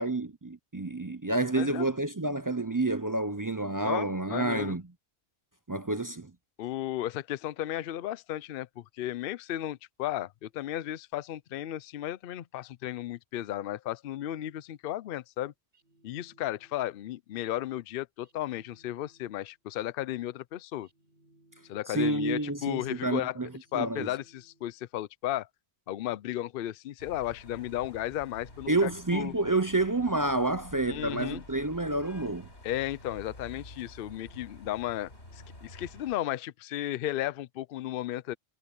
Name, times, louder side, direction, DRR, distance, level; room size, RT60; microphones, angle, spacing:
voice 1, 0.0-4.8 5.7-6.3 21.9-24.1 28.7-32.5, right 2 dB, 25° right, 0.4 m, -29 dB
voice 2, 1.5-1.9 3.8-4.8 6.6-15.5 16.0-20.9 21.7-23.4 23.7-25.5 25.9-29.3 30.9-31.4 32.6-38.3, left 13 dB, 65° left, 0.7 m, -34 dB
sound 1, 15.7-17.1 18.2-19.6 20.8-22.2 23.5-24.9, right 2 dB, 55° right, 7.9 m, -65 dB
sound 2, 27.0-36.2, left 1 dB, 90° left, 4.8 m, -49 dB
omnidirectional pair, 1.1 m